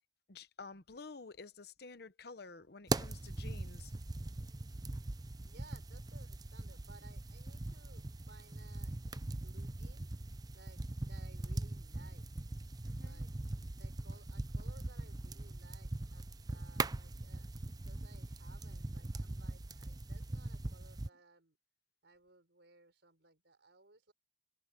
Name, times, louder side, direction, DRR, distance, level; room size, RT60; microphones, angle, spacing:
voice 1, 0.3-3.9 12.8-13.2, left 4 dB, 60° left, 1.0 m, -51 dB
sound 1, 2.9-21.1, right 2 dB, 20° right, 0.6 m, -41 dB
voice 2, 5.4-10.1 10.5-12.3 13.1-13.3 13.7-17.5 17.8-21.6 22.0-24.1, right 3 dB, 70° right, 4.7 m, -62 dB
head